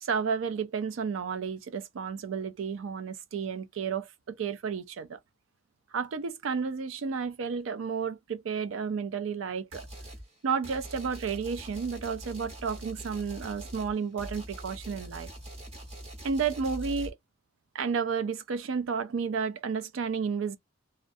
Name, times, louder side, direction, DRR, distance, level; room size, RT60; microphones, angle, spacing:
voice 1, 0.0-5.2 5.9-9.9 10.4-15.3 16.2-17.2 17.7-20.6, right 6 dB, 90° right, 0.4 m, -32 dB
sound 1, 9.7-10.2 10.6-17.1, right 1 dB, 35° right, 0.9 m, -43 dB
2.4 x 2.0 x 2.5 m
head